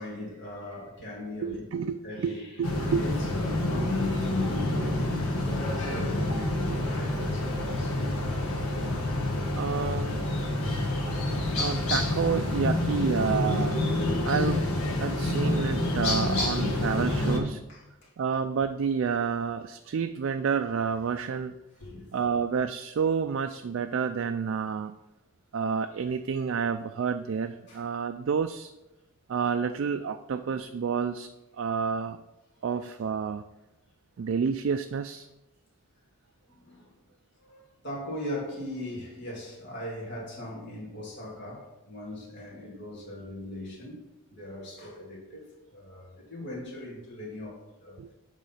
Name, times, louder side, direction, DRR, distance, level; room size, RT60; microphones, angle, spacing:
voice 1, 0.0-1.7 2.0-4.0 4.4-5.1 5.4-8.2 17.3-18.1 21.8-22.3 27.7-27.8 36.5-37.0 37.4-44.0 44.3-48.1, left 1 dB, 50° left, 2.4 m, -40 dB
voice 2, 1.4-3.0 6.7-6.8 9.5-10.4 11.6-13.8 14.2-14.6 15.0-17.6 18.2-21.5 22.1-24.9 25.5-28.7 29.3-31.3 31.6-32.2 32.6-33.4 34.2-35.3 48.0-48.1, right 6 dB, 60° right, 0.3 m, -29 dB
sound 1, 2.6-17.4, left 1 dB, 85° left, 1.6 m, -28 dB
8.2 x 3.8 x 5.6 m
head